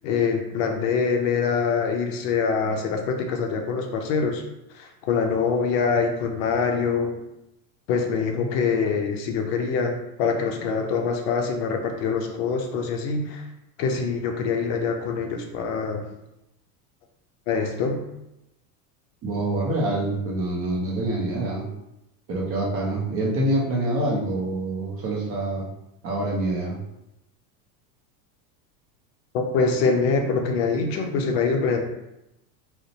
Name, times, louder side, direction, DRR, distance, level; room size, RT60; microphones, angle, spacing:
voice 1, 0.0-4.4 4.7-7.1 7.9-13.4 13.8-16.0 17.5-18.0 29.3-31.8, left 5 dB, 55° left, 3 dB, 0.5 m, -24 dB
voice 2, 19.2-21.7 22.3-25.7 26.0-26.8, right 1 dB, 30° right, -2 dB, 0.5 m, -26 dB
2.5 x 2.1 x 2.7 m, 0.87 s
supercardioid pair, 110°, 48 cm